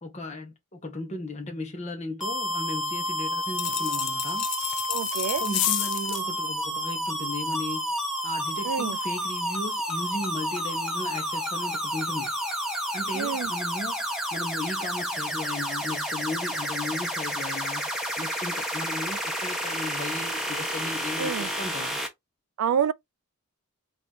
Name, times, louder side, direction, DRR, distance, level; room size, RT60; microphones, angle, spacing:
voice 1, 0.0-4.5 5.4-7.9 8.2-12.3 12.9-22.0, left 2 dB, 30° left, 1.0 m, -36 dB
sound 1, 2.2-22.1, equal, ahead, 0.9 m, -30 dB
sound 2, 3.5-6.3, left 18 dB, 90° left, 0.3 m, -30 dB
voice 2, 4.9-5.4 8.6-9.0 13.1-13.5 21.2-21.5 22.6-22.9, right 8 dB, 70° right, 0.3 m, -27 dB
3.9 x 2.6 x 3.5 m
head